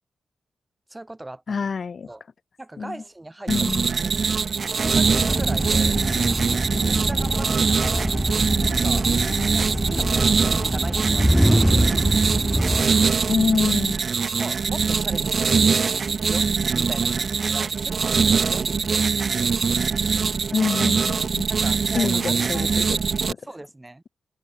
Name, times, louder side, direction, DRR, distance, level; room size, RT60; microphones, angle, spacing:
voice 1, 0.9-1.7 2.1-2.2 2.6-3.5 4.0-4.3 4.7-6.0 6.6-8.2 8.6-9.1 9.5-11.9 14.4-15.8 16.3-19.0 21.5-22.7 23.4-24.0, right 1 dB, 15° right, 3.6 m, -39 dB
voice 2, 1.5-2.1 2.8-3.0 3.5-3.9 13.3-14.0 20.5-21.5 21.9-23.4, left 5 dB, 55° left, 4.7 m, -26 dB
sound 1, 3.5-23.3, right 5 dB, 55° right, 0.7 m, -23 dB
sound 2, 4.8-13.9, equal, ahead, 0.6 m, -24 dB
open air
cardioid pair, 70°, 0 cm